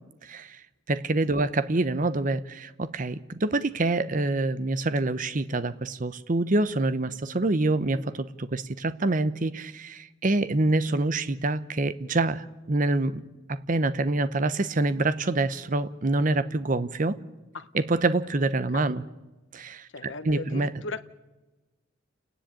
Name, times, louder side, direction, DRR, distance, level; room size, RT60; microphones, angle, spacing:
voice 1, 0.2-0.6 0.9-13.2 13.5-17.2 17.7-19.0 19.5-20.7, right 2 dB, 40° right, 14 dB, 0.7 m, -26 dB
voice 2, 19.9-21.1, left 3 dB, 75° left, 12 dB, 1.0 m, -37 dB
29.5 x 10.0 x 9.0 m, 1.1 s
head